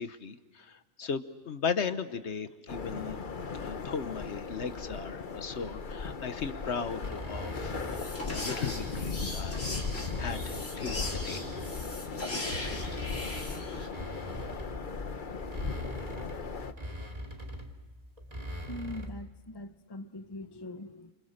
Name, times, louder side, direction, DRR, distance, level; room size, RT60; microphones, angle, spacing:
voice 1, 0.0-3.2 3.5-11.4, left 6 dB, 65° left, 11 dB, 1.2 m, -37 dB
sound 1, 2.7-16.7, left 4 dB, 40° left, 1.1 m, -38 dB
sound 2, 7.0-9.2 9.6-12.1 12.5-19.3, equal, 30° right, 2.3 m, -42 dB
sound 3, 7.5-13.9, left 2 dB, 80° left, 4.1 m, -39 dB
voice 2, 18.7-21.1, left 1 dB, 20° left, 10 dB, 0.8 m, -42 dB
29.5 x 27.0 x 6.5 m, 1.3 s
omnidirectional pair, 1.3 m